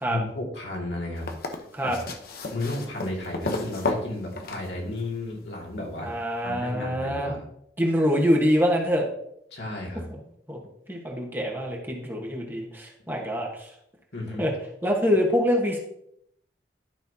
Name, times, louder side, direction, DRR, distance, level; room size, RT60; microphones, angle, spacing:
voice 1, 0.1-1.3 1.8-2.0 2.5-6.1 6.4-7.5 9.5-10.0 14.1-14.5, left 2 dB, 70° left, -2 dB, 2.2 m, -33 dB
sound 1, 1.1-5.3 6.5-6.6, left 2 dB, 55° left, 0.9 m, -32 dB
voice 2, 6.0-7.3 7.8-9.1 10.1-10.2 10.5-10.6 10.9-13.7 14.4-14.5 14.8-15.8, equal, 10° right, -1 dB, 1.2 m, -25 dB
12.0 x 5.6 x 2.8 m, 0.72 s
head